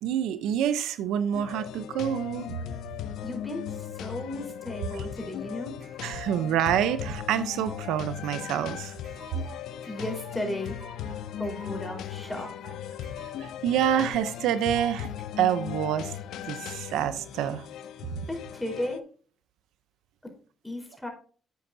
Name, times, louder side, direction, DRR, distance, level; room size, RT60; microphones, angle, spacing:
voice 1, 0.0-2.6 4.9-5.0 6.0-8.9 13.4-15.1 15.4-16.1 16.5-17.7, right 10 dB, 90° right, 0.8 m, -27 dB
sound 1, 1.3-19.0, left 10 dB, 80° left, 0.7 m, -38 dB
voice 2, 3.2-5.7 9.4-10.7 11.4-12.8 18.3-19.0 20.6-21.1, left 1 dB, 10° left, 4.3 m, -35 dB
sound 2, 5.2-15.2, right 3 dB, 50° right, 5.1 m, -50 dB
11.5 x 8.1 x 2.8 m
cardioid pair, 90°, 0 cm